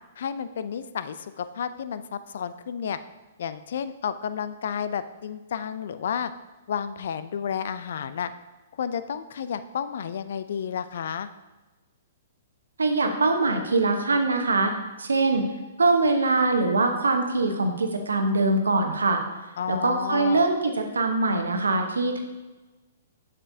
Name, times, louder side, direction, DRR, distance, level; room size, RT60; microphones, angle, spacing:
voice 1, 0.2-3.0 3.4-6.3 6.7-8.3 8.8-11.3 19.6-20.4, left 7 dB, 65° left, 13 dB, 0.4 m, -31 dB
voice 2, 12.8-14.7 15.0-15.4 15.8-19.2 19.7-22.2, right 3 dB, 85° right, 5 dB, 0.9 m, -23 dB
7.5 x 6.6 x 2.7 m, 1.2 s
hypercardioid pair, 125°, 0 cm